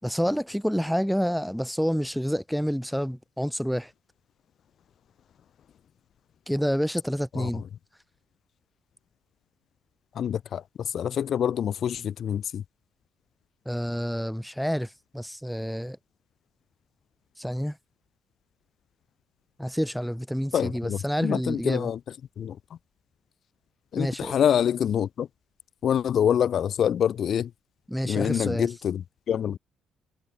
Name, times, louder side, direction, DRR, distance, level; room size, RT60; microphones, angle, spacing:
voice 1, 0.0-3.9 6.5-7.6 13.6-16.0 17.4-17.8 19.6-21.9 24.0-24.3 27.9-28.7, equal, ahead, 4.9 m, -28 dB
voice 2, 7.3-7.6 10.1-12.6 20.5-22.0 22.4-22.6 23.9-25.3 25.8-27.5 28.0-29.6, left 9 dB, 50° left, 2.8 m, -26 dB
figure-of-eight pair, 45°, 0 cm